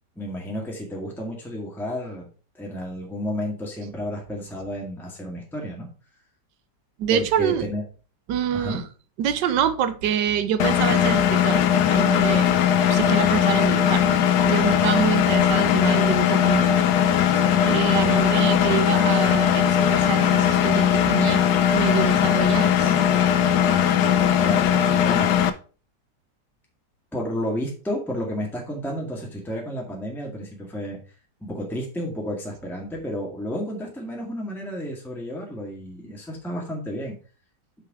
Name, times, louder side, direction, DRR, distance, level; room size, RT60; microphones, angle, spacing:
voice 1, 0.1-2.3 2.5-5.9 7.1-7.8 8.5-8.8 24.3-25.4 27.1-31.0 31.4-37.1, equal, ahead, 1.7 m, -31 dB
voice 2, 7.0-7.7 8.3-8.9 9.2-11.6 11.9-12.5 12.9-14.1 14.4-17.3 17.6-23.0, right 9 dB, 85° right, 1.4 m, -26 dB
Engine, 10.6-25.5, left 9 dB, 70° left, 1.2 m, -19 dB
6.5 x 5.9 x 4.7 m
omnidirectional pair, 1.9 m